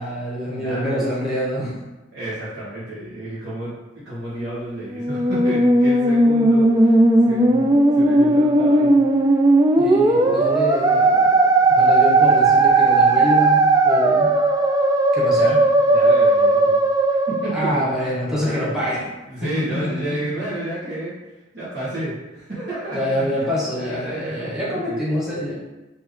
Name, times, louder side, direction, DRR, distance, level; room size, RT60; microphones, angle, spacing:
voice 1, 0.0-1.7 9.8-14.3 15.1-15.6 17.5-19.0 19.4-20.5 22.9-25.5, equal, 5° right, -7 dB, 1.2 m, -26 dB
voice 2, 0.5-1.1 2.1-9.3 15.4-15.5 15.8-16.8 17.3-17.9 18.4-18.8 19.3-21.1 21.5-25.1, right 1 dB, 60° right, -11 dB, 1.4 m, -31 dB
Musical instrument, 4.9-18.3, right 2 dB, 20° right, 0.3 m, -16 dB
4.6 x 2.9 x 3.2 m, 1.1 s
head